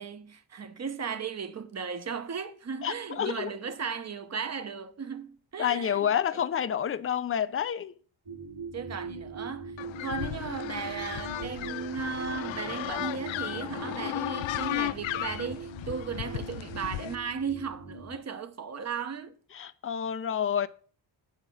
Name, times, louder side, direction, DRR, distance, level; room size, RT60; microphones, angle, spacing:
voice 1, 0.0-6.1 8.7-9.8 10.0-19.4, right 6 dB, 35° right, 0.9 m, -36 dB
voice 2, 2.8-3.5 5.6-7.9 19.5-20.7, left 9 dB, 30° left, 0.5 m, -29 dB
sound 1, 8.3-18.2, right 4 dB, 55° right, 2.8 m, -41 dB
sound 2, 9.8-17.2, left 15 dB, 75° left, 0.5 m, -35 dB
8.3 x 5.0 x 6.9 m
wide cardioid pair, 125°, 46 cm